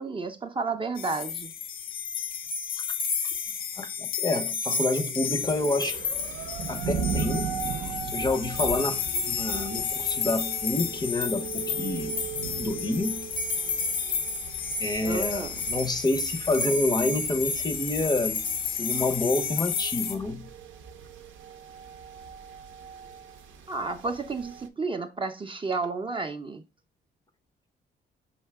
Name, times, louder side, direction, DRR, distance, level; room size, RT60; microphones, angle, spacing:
voice 1, 0.0-1.5 8.0-8.1 15.0-15.6 23.7-26.6, right 3 dB, 25° right, 0.5 m, -32 dB
sound 1, 1.0-20.1, left 6 dB, 80° left, 0.7 m, -31 dB
voice 2, 3.8-6.0 6.7-7.5 8.1-12.2 12.6-13.3 14.8-18.4 18.8-20.5, left 2 dB, 20° left, 0.6 m, -28 dB
sound 2, 5.4-24.7, right 6 dB, 75° right, 0.6 m, -38 dB
5.6 x 2.8 x 3.4 m
cardioid pair, 90°, 20 cm